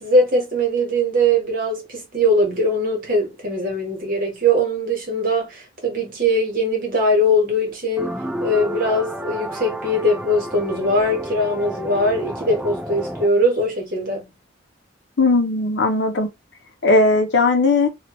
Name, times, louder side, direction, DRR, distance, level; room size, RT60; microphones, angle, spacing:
voice 1, 0.0-14.3, equal, 45° right, 1.3 m, -21 dB
sound 1, 8.0-13.3, equal, 5° right, 0.3 m, -31 dB
voice 2, 15.2-16.3 16.8-17.9, left 3 dB, 60° left, 0.7 m, -17 dB
2.9 x 2.3 x 2.9 m
head